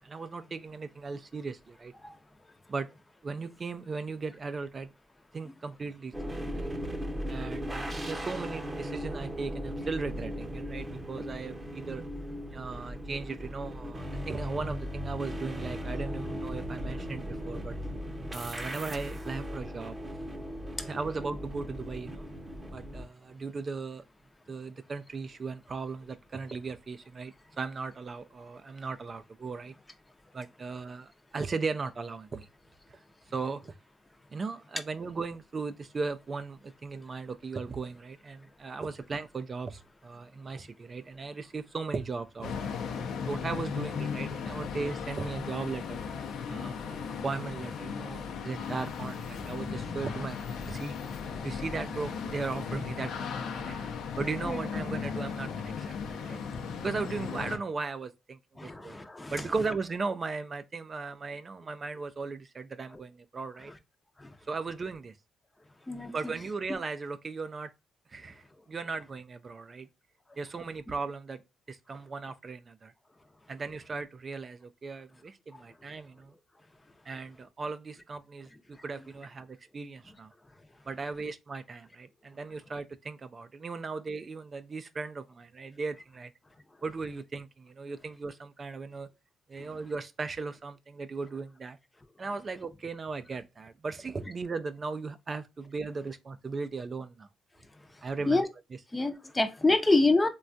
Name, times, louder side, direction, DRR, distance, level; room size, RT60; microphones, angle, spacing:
voice 1, 0.0-1.9 2.7-2.9 3.2-4.9 5.3-6.7 7.3-12.0 12.5-17.7 18.3-20.0 20.8-22.3 22.7-24.0 24.5-29.7 30.3-32.5 32.9-33.0 33.3-33.7 34.3-42.8 43.3-46.1 46.5-50.9 51.4-53.8 54.2-56.4 56.8-59.0 59.3-63.7 64.5-65.2 66.1-67.7 68.1-69.9 70.4-71.4 71.7-72.9 73.5-76.3 77.1-80.3 80.9-86.3 86.8-89.1 89.5-91.8 92.2-97.3 98.0-98.4, right 4 dB, 35° right, 0.3 m, -37 dB
sound 1, 6.1-23.1, equal, 15° right, 0.7 m, -37 dB
sound 2, 42.4-57.6, left 6 dB, 75° left, 0.5 m, -36 dB
voice 2, 58.6-59.5 64.2-64.3 65.9-66.3 66.7-66.8 89.6-89.7 98.3-98.5 98.9-100.3, left 2 dB, 15° left, 0.5 m, -27 dB
3.2 x 2.2 x 2.5 m
cardioid pair, 90°, 0 cm